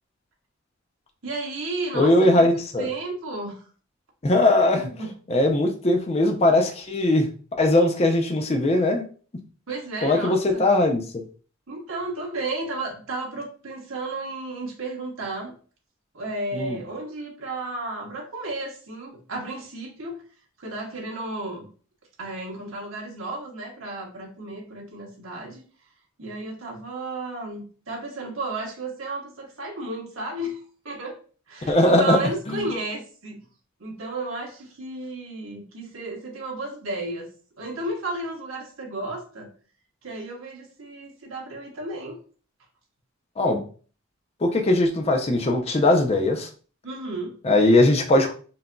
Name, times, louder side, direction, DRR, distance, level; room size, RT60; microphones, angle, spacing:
voice 1, 1.2-2.5 2.8-3.6 4.7-5.1 9.7-10.7 11.7-15.5 16.1-20.2 20.6-21.7 22.2-25.6 26.2-31.2 31.5-33.4 33.8-37.3 37.6-39.5 40.0-42.2 46.8-47.3, right 2 dB, 75° right, 0 dB, 1.2 m, -33 dB
voice 2, 1.9-2.9 4.2-4.9 5.3-7.3 7.6-9.0 10.0-11.2 16.5-16.8 31.7-32.2 32.5-32.6 43.4-43.6 44.4-46.5 47.4-48.3, left 2 dB, 30° left, 3 dB, 0.5 m, -20 dB
5.8 x 2.6 x 2.2 m, 0.40 s
head